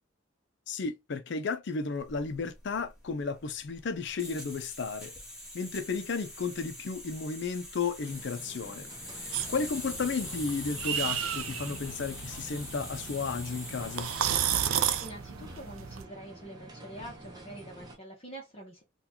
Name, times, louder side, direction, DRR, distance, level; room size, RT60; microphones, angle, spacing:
voice 1, 0.7-5.1 5.5-8.9 9.2-14.1, left 4 dB, 55° left, 0.5 m, -33 dB
sound 1, 2.0-14.4, left 1 dB, 5° right, 1.2 m, -43 dB
sound 2, 8.0-18.0, right 1 dB, 20° right, 0.7 m, -49 dB
sound 3, 9.3-16.0, right 9 dB, 85° right, 0.4 m, -33 dB
voice 2, 9.7-10.4 14.9-18.8, right 1 dB, 30° left, 0.9 m, -46 dB
3.8 x 2.3 x 2.8 m
head